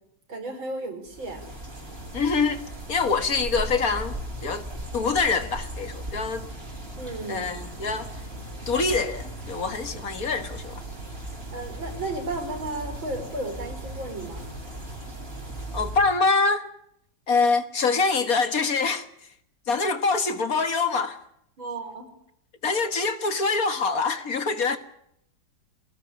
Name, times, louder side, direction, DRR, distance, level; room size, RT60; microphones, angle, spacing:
voice 1, 0.3-1.5 7.0-7.5 11.5-14.5 21.6-22.1, right 2 dB, 90° right, 5.7 m, -34 dB
sound 1, 1.1-16.2, right 1 dB, 30° right, 5.0 m, -37 dB
voice 2, 2.1-2.6 2.9-4.2 4.4-4.7 4.9-6.5 7.3-8.1 8.7-10.8 15.7-16.7 17.3-19.3 19.7-21.2 22.6-24.8, left 4 dB, 50° left, 1.9 m, -25 dB
23.5 x 18.5 x 9.6 m
omnidirectional pair, 2.1 m